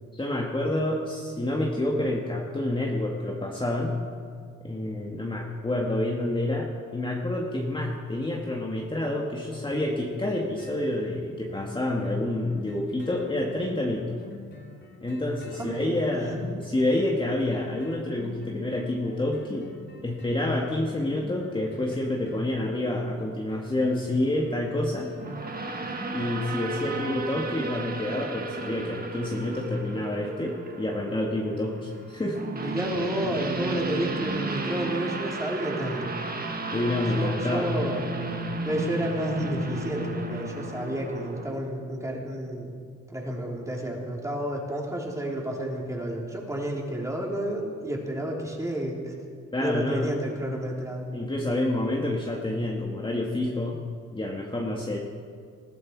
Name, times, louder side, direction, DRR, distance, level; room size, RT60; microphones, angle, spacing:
voice 1, 0.1-4.0 4.6-6.7 6.9-14.2 15.0-19.7 20.0-25.1 26.1-32.4 36.7-37.7 49.5-50.1 51.1-53.8 54.1-55.0, left 1 dB, 15° left, -2 dB, 1.9 m, -28 dB
sound 1, 9.7-28.4 28.8-28.9, left 2 dB, 35° left, 3.3 m, -47 dB
voice 2, 15.6-16.4 32.5-36.2 37.1-38.1 38.6-42.8 43.1-49.1 49.6-51.1, right 1 dB, 10° right, -2 dB, 3.6 m, -31 dB
sound 2, 25.2-41.5, right 3 dB, 30° right, 1.7 m, -34 dB
20.5 x 14.0 x 4.8 m, 2.1 s
cardioid pair, 90°, 30 cm